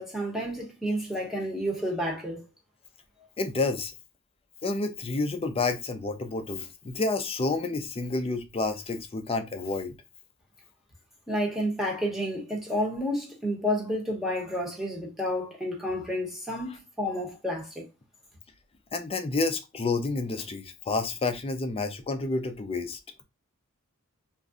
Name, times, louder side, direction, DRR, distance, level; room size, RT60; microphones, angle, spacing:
voice 1, 0.0-2.5 11.3-17.8, equal, ahead, 1.0 m, -30 dB
voice 2, 3.4-3.9 4.6-9.9 18.9-23.0, left 3 dB, 25° left, 0.4 m, -29 dB
2.5 x 2.2 x 3.6 m
head